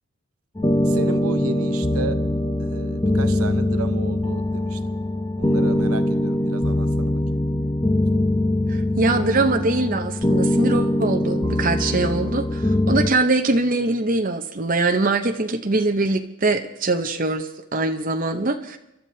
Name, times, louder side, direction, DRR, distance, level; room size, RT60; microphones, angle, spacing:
sound 1, 0.5-13.1, left 1 dB, 15° left, 0.6 m, -22 dB
voice 1, 0.8-2.2 2.6-5.0 5.4-7.2, right 4 dB, 80° right, 10 dB, 0.9 m, -33 dB
voice 2, 9.0-18.8, right 2 dB, 40° right, 5 dB, 0.8 m, -22 dB
30.0 x 12.0 x 2.8 m, 0.91 s
head